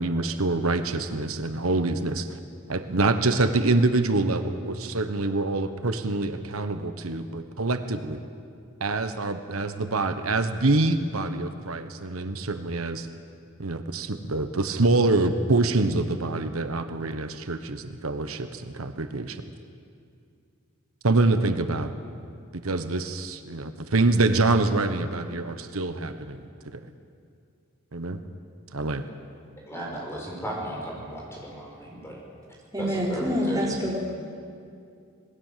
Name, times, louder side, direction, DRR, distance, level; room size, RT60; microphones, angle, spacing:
voice 1, 0.0-2.3 2.7-8.2 8.8-13.1 13.6-19.4 21.0-21.9 22.6-26.4 26.7-26.8 27.9-28.2 28.7-29.0, right 2 dB, 85° right, 1.3 m, -25 dB
voice 2, 29.7-32.2 32.8-33.7, right 1 dB, 10° left, 6.3 m, -35 dB
voice 3, 32.7-34.0, equal, 15° right, 4.2 m, -26 dB
27.0 x 19.5 x 7.6 m
head